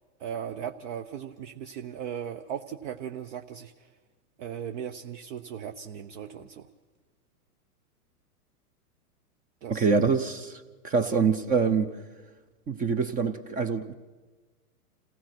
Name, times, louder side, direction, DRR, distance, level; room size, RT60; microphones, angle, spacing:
voice 1, 0.2-3.9 4.4-6.7 9.6-10.2, right 8 dB, 50° right, 1.0 m, -37 dB
voice 2, 9.7-11.9 12.7-13.9, right 5 dB, 20° right, 0.6 m, -25 dB
27.5 x 16.5 x 5.9 m
hypercardioid pair, 125°, 46 cm